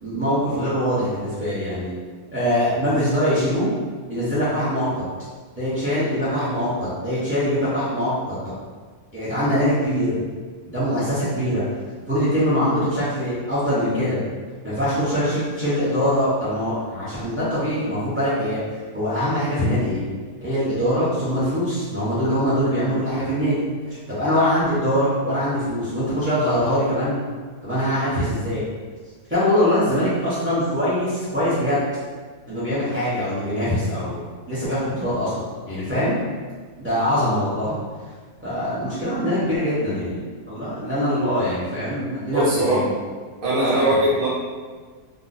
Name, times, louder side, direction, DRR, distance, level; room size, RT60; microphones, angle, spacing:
voice 1, 0.0-1.9 2.3-3.7 4.1-5.0 5.6-8.4 9.1-10.2 10.7-11.6 12.1-14.2 14.6-18.6 18.9-20.0 20.4-23.6 24.1-27.2 27.6-28.6 29.3-31.8 32.5-34.2 34.5-35.3 35.7-36.1 36.8-37.7 38.4-40.2 40.5-42.9 43.7-44.0, equal, 10° right, -12 dB, 0.5 m, -23 dB
voice 2, 42.3-42.8 43.4-44.3, right 1 dB, 40° right, -8 dB, 1.0 m, -20 dB
2.6 x 2.0 x 3.9 m, 1.5 s
omnidirectional pair, 1.6 m